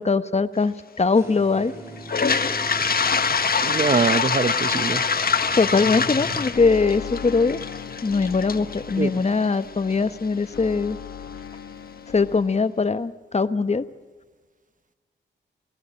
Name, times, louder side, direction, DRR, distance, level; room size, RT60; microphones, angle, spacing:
voice 1, 0.0-1.7 5.5-7.6 8.0-11.0 12.1-13.8, left 4 dB, 35° left, 12 dB, 1.2 m, -21 dB
sound 1, 1.1-6.5, right 1 dB, 15° right, 6.0 m, -39 dB
Toilet flush, 2.0-9.9, left 5 dB, 50° left, 1.5 m, -25 dB
voice 2, 3.6-5.1 9.0-9.2, right 5 dB, 45° right, 14 dB, 1.1 m, -23 dB
sound 2, 5.4-12.4, left 7 dB, 80° left, 1.4 m, -38 dB
28.5 x 18.0 x 8.8 m, 1.4 s
cardioid pair, 55°, 19 cm